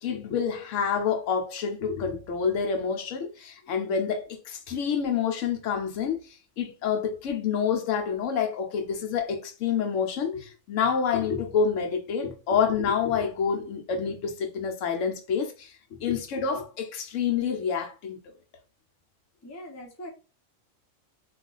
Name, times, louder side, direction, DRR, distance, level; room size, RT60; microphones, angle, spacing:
voice 1, 0.0-18.2, left 6 dB, 75° left, 0.9 m, -28 dB
voice 2, 19.4-20.1, equal, 20° left, 0.5 m, -41 dB
2.4 x 2.4 x 3.8 m
omnidirectional pair, 1.4 m